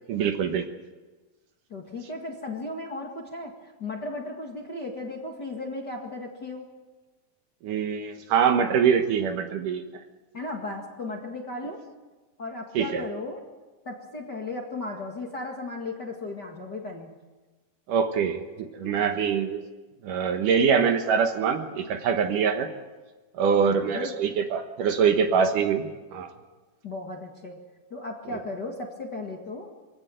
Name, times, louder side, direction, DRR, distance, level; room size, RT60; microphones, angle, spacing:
voice 1, 0.1-0.6 7.6-9.8 12.8-13.0 17.9-19.6 20.0-22.7 23.3-26.3, right 6 dB, 65° right, 6 dB, 2.6 m, -24 dB
voice 2, 1.7-6.7 10.3-11.8 12.4-13.4 13.9-17.1 18.8-19.0 23.6-24.1 26.8-27.6 27.9-29.7, left 2 dB, 35° left, 1 dB, 1.9 m, -36 dB
24.5 x 17.0 x 9.1 m, 1.2 s
omnidirectional pair, 4.4 m